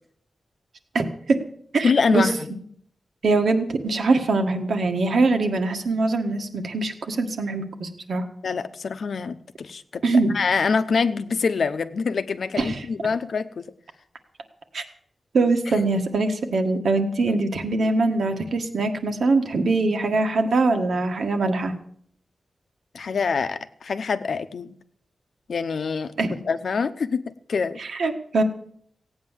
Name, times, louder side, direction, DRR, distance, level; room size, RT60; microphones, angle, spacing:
voice 1, 0.9-1.4 1.7-2.3 3.2-8.3 10.0-10.3 12.6-12.8 14.7-14.8 15.3-21.7 26.2-26.4 27.8-28.4, right 3 dB, 80° right, 5 dB, 1.7 m, -23 dB
voice 2, 1.8-2.5 8.4-10.0 10.3-13.7 17.3-17.4 22.9-24.7 25.5-26.1 26.5-27.8, left 5 dB, 70° left, 11 dB, 0.8 m, -25 dB
16.5 x 8.9 x 7.4 m, 0.64 s
wide cardioid pair, 150°, 0 cm